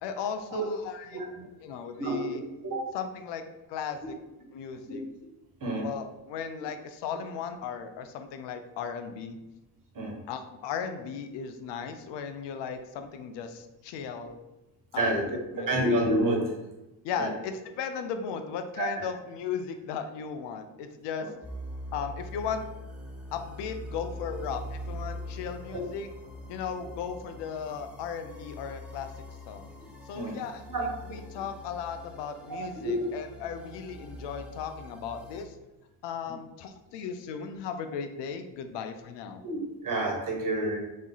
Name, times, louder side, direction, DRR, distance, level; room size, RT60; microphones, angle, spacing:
voice 1, 0.0-1.1 1.6-2.4 2.9-3.4 3.7-4.1 4.5-5.0 5.8-9.4 10.3-14.4 14.9-15.2 15.5-15.9 17.0-21.3 21.9-22.6 23.3-26.1 26.5-29.1 29.5-29.7 30.1-35.6 36.0-39.4, left 7 dB, 60° left, 8 dB, 0.6 m, -36 dB
voice 2, 1.1-1.5 2.0-2.3 2.6-2.9 4.9-5.0 5.6-5.9 9.9-10.2 14.9-15.3 15.6-16.5 17.2-17.3 18.8-19.0 21.2-21.3 25.7-25.8 30.1-30.4 30.7-30.8 32.8-33.0 39.4-40.8, right 1 dB, 40° right, 0 dB, 1.4 m, -29 dB
sound 1, 21.4-35.4, left 1 dB, ahead, 0.8 m, -43 dB
3.5 x 3.1 x 4.0 m, 0.99 s
hypercardioid pair, 55°, 48 cm